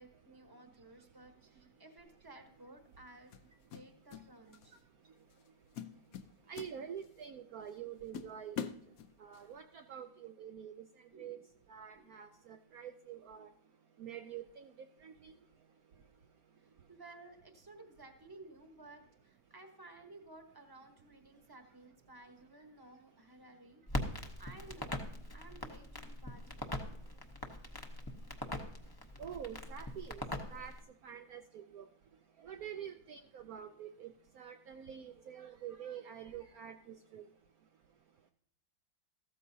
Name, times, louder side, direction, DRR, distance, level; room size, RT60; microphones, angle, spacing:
voice 1, 0.0-3.3 3.7-4.8 11.1-11.4 11.9-12.2 16.9-25.0 25.3-26.6 32.7-33.0 33.5-33.7, right 2 dB, 15° right, 5 dB, 0.9 m, -56 dB
sound 1, 2.0-2.2 3.3-4.3 4.5-4.8 5.3-5.5 5.7-7.3 7.7-7.8 8.1-9.5, left 8 dB, 65° left, 0.9 m, -44 dB
voice 2, 6.5-8.7 9.2-10.7 11.2-11.4 11.7-13.5 14.0-14.6 15.0-15.3 29.2-30.2 30.5-30.7 31.0-31.9 32.4-34.1 34.4-36.8 37.1-37.2, right 9 dB, 70° right, 6 dB, 0.9 m, -46 dB
Crackle, 23.9-30.8, left 1 dB, 20° left, 0.6 m, -42 dB
14.5 x 13.0 x 2.7 m, 0.69 s
omnidirectional pair, 2.0 m